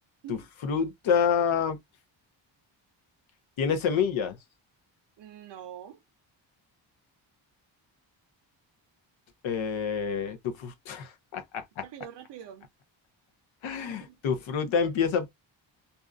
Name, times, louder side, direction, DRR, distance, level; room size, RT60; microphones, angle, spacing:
voice 1, 0.3-1.8 3.6-4.4 9.4-11.9 13.6-15.3, left 6 dB, 90° left, 0.9 m, -28 dB
voice 2, 5.2-6.0 11.8-12.7 13.9-14.2, right 10 dB, 65° right, 0.5 m, -44 dB
2.7 x 2.4 x 2.2 m
cardioid pair, 115°, 46 cm